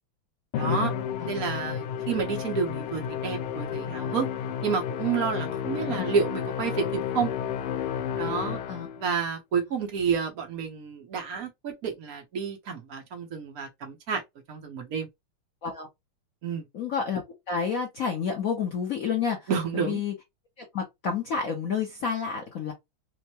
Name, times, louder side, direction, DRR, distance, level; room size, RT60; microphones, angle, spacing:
Musical instrument, 0.5-9.1, left 8 dB, 85° left, 1.5 m, -31 dB
voice 1, 0.5-0.9 1.3-4.3 4.6-7.3 8.2-8.6 9.0-14.2 14.5-15.1 16.4-16.7 19.5-20.0, right 6 dB, 55° right, 1.1 m, -30 dB
voice 2, 16.7-17.2 17.5-20.1 20.6-22.7, left 6 dB, 60° left, 0.9 m, -30 dB
4.4 x 2.1 x 2.8 m
omnidirectional pair, 2.3 m